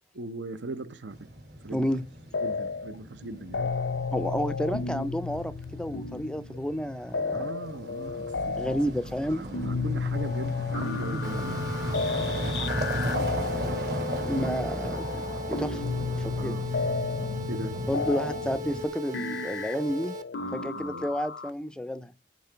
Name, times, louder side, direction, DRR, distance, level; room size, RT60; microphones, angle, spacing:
voice 1, 0.1-1.2 1.6-1.9 2.4-3.7 7.3-8.8 9.3-11.7 16.4-16.7 17.5-17.8 20.4-21.1, right 2 dB, 80° right, 0.7 m, -39 dB
sound 1, 1.1-18.9, equal, 60° right, 2.5 m, -36 dB
voice 2, 1.7-2.0 4.1-7.5 8.6-9.5 14.2-15.8 16.2-16.6 17.9-20.2 20.5-22.1, equal, 5° left, 0.4 m, -31 dB
sound 2, 2.3-3.0 3.2-21.5, left 4 dB, 75° left, 0.5 m, -33 dB
sound 3, 11.2-20.2, right 1 dB, 45° right, 0.8 m, -39 dB
9.4 x 3.8 x 5.6 m
head